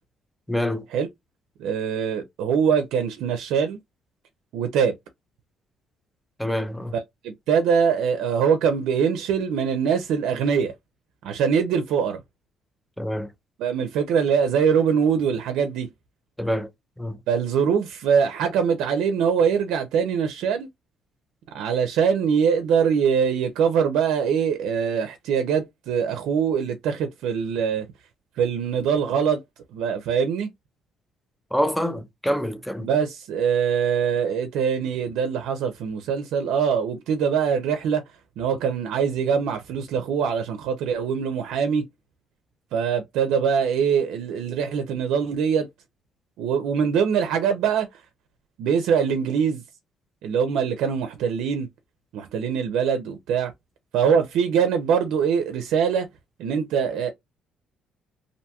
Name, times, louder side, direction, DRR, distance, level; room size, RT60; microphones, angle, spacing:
voice 1, 0.5-0.9 6.4-6.9 13.0-13.3 16.4-16.7 17.0-17.2 31.5-32.9, equal, 5° left, 0.4 m, -26 dB
voice 2, 1.6-3.8 4.5-4.9 6.9-10.7 11.2-12.2 13.6-15.9 17.3-20.7 21.5-27.8 28.4-29.4 29.7-30.5 32.8-38.0 38.4-41.8 42.7-45.7 46.4-48.0 48.6-49.6 50.2-51.7 52.1-53.5 53.9-56.1 56.4-57.1, right 7 dB, 85° right, 0.5 m, -23 dB
2.6 x 2.2 x 2.7 m
cardioid pair, 135°, 0 cm